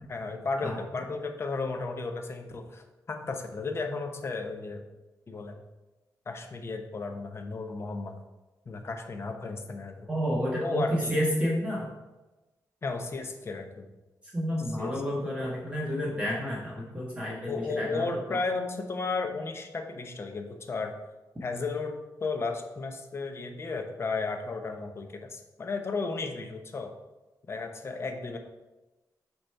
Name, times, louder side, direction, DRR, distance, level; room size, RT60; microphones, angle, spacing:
voice 1, 0.1-4.9 5.3-5.6 6.3-8.2 8.7-10.0 10.6-11.2 12.8-13.8 14.8-15.5 17.5-20.9 21.4-26.9 27.5-28.4, left 3 dB, 40° left, 5 dB, 0.9 m, -34 dB
voice 2, 10.1-11.9 14.3-18.4, equal, 15° right, -5 dB, 1.4 m, -30 dB
7.9 x 3.1 x 5.7 m, 1.1 s
wide cardioid pair, 120°, 7 cm